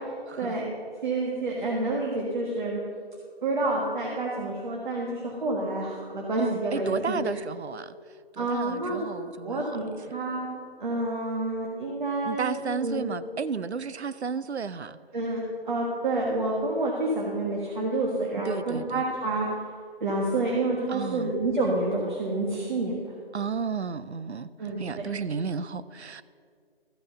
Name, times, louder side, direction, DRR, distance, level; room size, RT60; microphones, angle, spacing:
voice 1, 0.4-0.7 1.0-2.8 3.4-7.3 8.4-9.0 9.4-13.0 15.1-19.6 20.0-23.1 24.6-25.1, right 2 dB, 50° right, -2 dB, 1.6 m, -28 dB
voice 2, 6.4-7.9 8.3-9.6 12.2-15.0 18.5-19.0 20.9-21.3 23.3-26.2, right 5 dB, 90° right, 15 dB, 0.6 m, -32 dB
13.5 x 5.5 x 6.7 m, 2.1 s
figure-of-eight pair, 150°, 32 cm